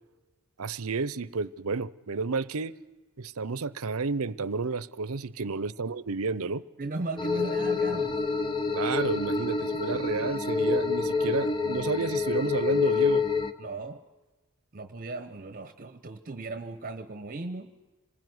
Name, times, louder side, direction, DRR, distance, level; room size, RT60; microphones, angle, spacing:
voice 1, 0.6-2.8 3.2-6.6 8.7-13.2, right 4 dB, 70° right, 0.8 m, -31 dB
voice 2, 6.8-8.2 13.6-14.0 14.7-17.7, right 2 dB, 40° right, 1.0 m, -37 dB
sound 1, 7.2-13.5, left 4 dB, 20° left, 1.1 m, -27 dB
26.5 x 20.5 x 9.6 m
head